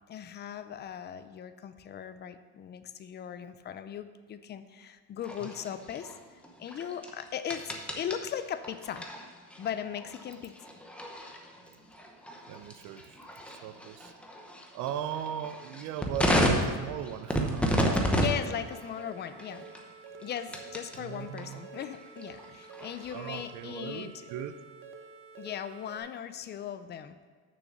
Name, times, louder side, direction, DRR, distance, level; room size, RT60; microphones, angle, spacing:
voice 1, 0.1-9.1 9.6-10.7 11.2-11.3 18.1-19.6 20.2-24.3 25.4-27.2, left 9 dB, 30° left, 11 dB, 0.5 m, -38 dB
sound 1, 5.2-21.0 21.4-23.5, equal, 5° left, 0.9 m, -33 dB
voice 2, 12.5-13.2 13.6-14.1 14.7-17.7 21.0-21.7 23.1-24.6, right 10 dB, 65° right, 12 dB, 0.6 m, -38 dB
sound 2, 18.0-26.0, right 4 dB, 40° right, 1.0 m, -49 dB
6.7 x 6.3 x 6.8 m, 1.5 s
cardioid pair, 140°, 34 cm